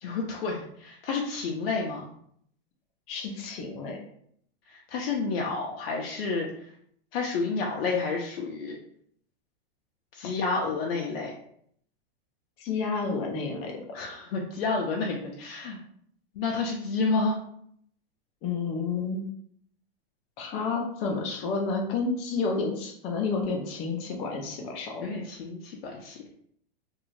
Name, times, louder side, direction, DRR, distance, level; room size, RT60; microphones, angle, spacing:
voice 1, 0.0-2.1 4.7-6.5 7.1-8.8 10.1-11.3 13.9-15.8 16.4-17.4 25.0-26.2, left 4 dB, 85° left, -1 dB, 0.6 m, -30 dB
voice 2, 3.1-4.0 12.6-13.7 18.4-19.3 20.4-25.3, left 4 dB, 20° left, 1 dB, 0.4 m, -30 dB
2.7 x 2.4 x 3.1 m, 0.66 s
supercardioid pair, 160°, 29 cm